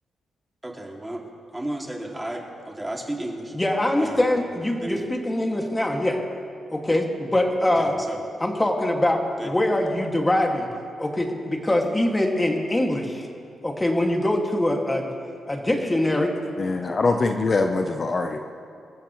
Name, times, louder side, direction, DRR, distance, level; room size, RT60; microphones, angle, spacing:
voice 1, 0.6-1.2 1.5-3.5 4.0-4.4 4.8-5.0 7.7-8.2 9.4-9.5, right 1 dB, 15° right, 0 dB, 2.6 m, -33 dB
voice 2, 3.5-6.2 6.7-7.9 8.4-10.7 11.0-13.3 13.6-15.1 15.5-16.3, left 1 dB, 15° left, 1 dB, 2.2 m, -23 dB
voice 3, 16.6-18.4, left 3 dB, 40° left, 4 dB, 0.9 m, -23 dB
27.0 x 14.5 x 3.2 m, 2.4 s
cardioid pair, 80°, 0 cm